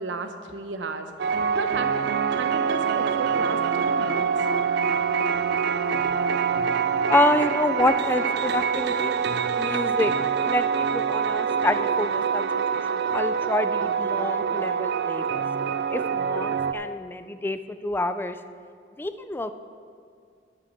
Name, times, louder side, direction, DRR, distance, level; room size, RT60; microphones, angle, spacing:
voice 1, 0.0-1.9 2.3-4.5, right 3 dB, 85° right, 7 dB, 0.8 m, -33 dB
sound 1, 1.2-16.7, right 6 dB, 65° right, 0.4 m, -25 dB
voice 2, 7.1-9.2 9.5-10.1 10.4-15.4 15.9-18.4 19.0-19.5, left 2 dB, 10° left, 10 dB, 0.4 m, -27 dB
11.5 x 5.9 x 6.5 m, 2.3 s
head